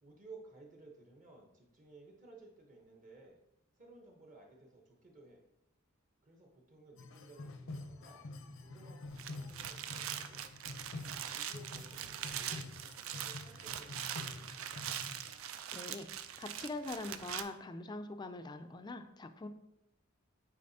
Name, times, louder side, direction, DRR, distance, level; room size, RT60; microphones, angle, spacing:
voice 1, 0.0-3.4 3.8-5.5 6.2-8.3 8.6-10.4 11.3-14.8, right 2 dB, 40° right, 1 dB, 0.9 m, -57 dB
sound 1, 7.0-15.4, left 2 dB, 70° left, 0.6 m, -48 dB
sound 2, 9.1-17.4, right 10 dB, 75° right, 0.4 m, -42 dB
voice 2, 15.7-19.5, left 2 dB, 20° left, 9 dB, 0.4 m, -43 dB
8.5 x 4.1 x 2.7 m, 0.88 s
head